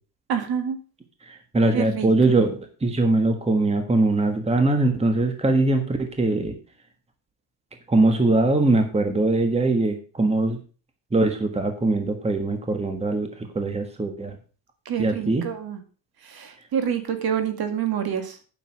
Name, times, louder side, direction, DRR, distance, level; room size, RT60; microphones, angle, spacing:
voice 1, 0.3-0.8 1.7-2.5 14.9-15.8 16.2-18.4, right 8 dB, 55° right, 7 dB, 2.2 m, -27 dB
voice 2, 1.3-6.5 7.9-10.6 11.1-14.3 15.0-15.4, right 2 dB, 15° right, 6 dB, 1.5 m, -22 dB
9.3 x 6.8 x 6.2 m, 0.36 s
cardioid pair, 130°, 45 cm